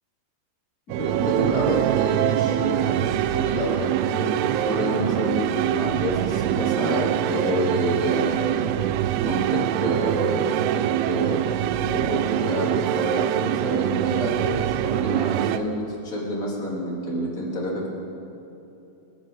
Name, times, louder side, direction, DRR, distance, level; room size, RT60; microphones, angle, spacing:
voice 1, 0.9-8.8 9.2-17.9, equal, 25° left, -4 dB, 2.5 m, -28 dB
sound 1, 0.9-15.6, right 12 dB, 85° right, 2.4 m, -24 dB
27.0 x 12.0 x 4.2 m, 2.9 s
omnidirectional pair, 5.1 m